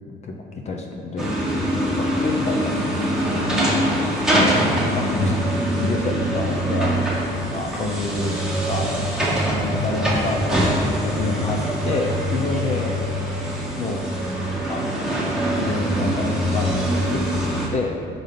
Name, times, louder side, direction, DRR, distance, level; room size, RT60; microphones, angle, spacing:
voice 1, 0.6-1.4 2.0-3.5 4.3-7.0 7.5-8.4 8.7-9.2 9.5-13.0 13.8-14.2 14.7-15.1 15.6-16.8 17.1-18.0, left 2 dB, 40° left, 2 dB, 0.6 m, -28 dB
sound 1, 1.2-17.7, equal, 5° right, 1.3 m, -23 dB
4.9 x 3.9 x 5.6 m, 2.3 s
cardioid pair, 110°, 17 cm